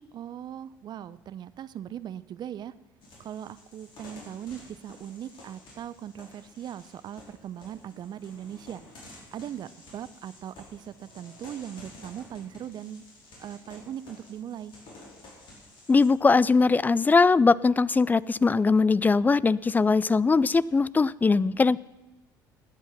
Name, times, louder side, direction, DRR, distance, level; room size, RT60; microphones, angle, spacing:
voice 1, 0.1-2.7 3.2-8.8 9.3-13.0 13.4-14.7, right 10 dB, 40° right, 16 dB, 0.6 m, -39 dB
sound 1, 3.0-16.1, left 2 dB, 50° left, 5.0 m, -51 dB
voice 2, 15.9-21.8, left 4 dB, 15° left, 21 dB, 0.4 m, -21 dB
20.5 x 8.3 x 5.9 m, 1.1 s
figure-of-eight pair, 60°, 11 cm